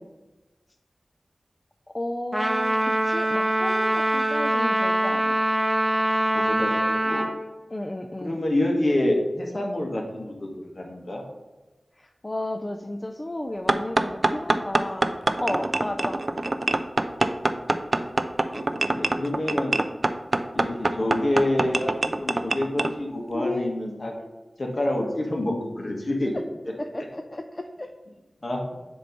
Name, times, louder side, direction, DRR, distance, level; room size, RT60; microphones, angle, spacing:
voice 1, 1.9-5.5 7.7-8.4 12.0-15.1 15.4-16.2 23.3-23.7 26.3-26.4 26.8-27.9, left 1 dB, 30° left, 5 dB, 0.4 m, -33 dB
Trumpet, 2.3-7.3, right 1 dB, 5° right, 1.0 m, -23 dB
voice 2, 6.3-7.3 8.2-10.5 10.7-11.2 18.5-18.6 18.9-19.8 20.5-24.3 24.6-26.4 28.4-28.6, left 1 dB, 55° left, 0 dB, 1.4 m, -27 dB
sound 1, 13.7-22.9, right 2 dB, 45° right, 0.4 m, -25 dB
7.4 x 3.1 x 5.3 m, 1.1 s
wide cardioid pair, 60°, 0 cm